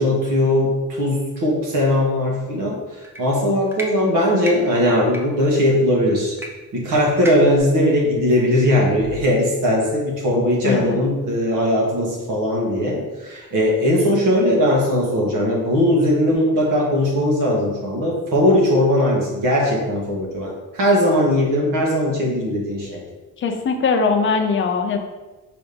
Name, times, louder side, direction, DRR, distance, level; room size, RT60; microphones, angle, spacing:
voice 1, 0.0-6.4 6.7-23.0, left 1 dB, 75° right, -2 dB, 1.8 m, -19 dB
sound 1, 3.0-3.2 3.7-3.9 4.4-4.6 5.1-5.2 6.4-6.5 6.7-6.8 7.2-7.6, equal, 5° right, 0.6 m, -31 dB
voice 2, 23.4-25.0, left 5 dB, 35° left, 5 dB, 0.6 m, -20 dB
5.1 x 3.5 x 5.3 m, 1.2 s
cardioid pair, 170°, 33 cm